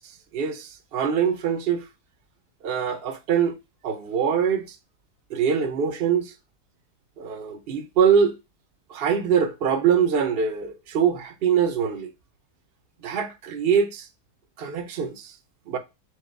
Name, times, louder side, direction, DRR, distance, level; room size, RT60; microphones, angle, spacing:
voice 1, 0.3-1.8 2.6-3.5 3.8-4.8 5.3-6.3 7.2-8.3 8.9-12.1 13.0-14.1 14.6-15.3 15.7-15.8, right 7 dB, 60° right, 0.6 m, -23 dB
4.6 x 2.2 x 4.4 m
omnidirectional pair, 1.7 m